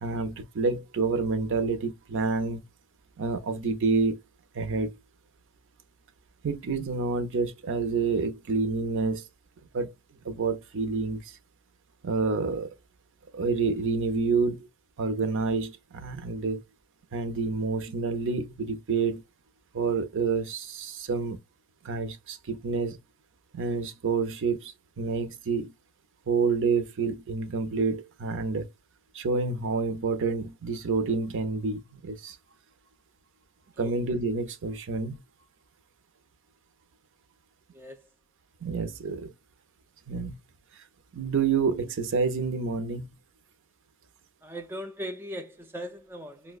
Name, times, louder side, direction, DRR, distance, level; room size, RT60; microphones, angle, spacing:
voice 1, 0.0-2.6 3.2-4.2 4.5-4.9 6.4-9.2 9.7-9.9 10.2-11.4 12.0-12.7 13.3-14.7 15.0-16.6 17.1-19.2 19.7-21.4 21.8-23.0 23.5-25.7 26.3-28.7 29.1-32.4 33.8-35.2 38.6-39.3 40.1-40.3 41.1-43.1, right 4 dB, 60° right, 0.5 m, -28 dB
voice 2, 44.4-46.6, equal, 10° right, 0.3 m, -39 dB
5.2 x 2.2 x 2.3 m
head